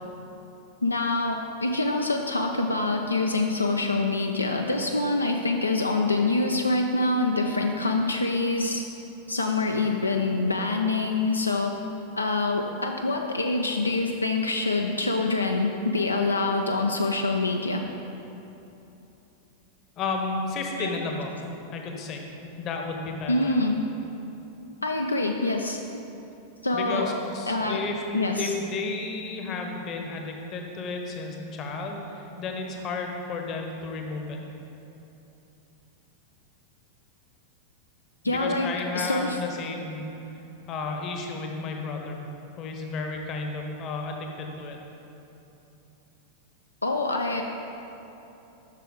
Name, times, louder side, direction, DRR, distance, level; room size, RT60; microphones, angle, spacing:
voice 1, 0.8-8.8 9.3-11.8 12.2-17.8 20.8-20.9 23.3-23.8 24.8-25.8 26.6-27.2 27.5-27.8 28.1-28.5 38.2-38.7 38.9-39.4 46.8-47.4, left 2 dB, 80° left, 3 dB, 0.3 m, -25 dB
voice 2, 20.0-21.4 21.7-22.3 22.6-23.5 26.7-34.4 38.2-40.1 40.7-42.3 42.6-44.8, left 3 dB, 35° left, 2 dB, 0.8 m, -32 dB
7.4 x 5.9 x 3.8 m, 2.9 s
figure-of-eight pair, 90°, 0 cm